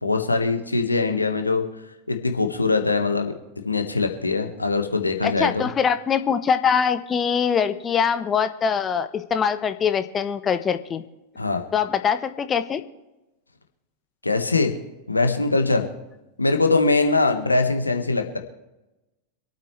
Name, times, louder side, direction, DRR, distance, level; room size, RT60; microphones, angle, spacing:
voice 1, 0.0-1.6 2.1-3.3 3.6-5.7 11.3-11.6 14.2-14.7 15.1-15.9 16.4-18.4, left 3 dB, 80° left, 5 dB, 1.5 m, -22 dB
voice 2, 5.2-11.0 11.7-12.8, left 7 dB, 25° left, 10 dB, 1.0 m, -23 dB
26.0 x 8.8 x 3.2 m, 0.99 s
figure-of-eight pair, 90°, 0 cm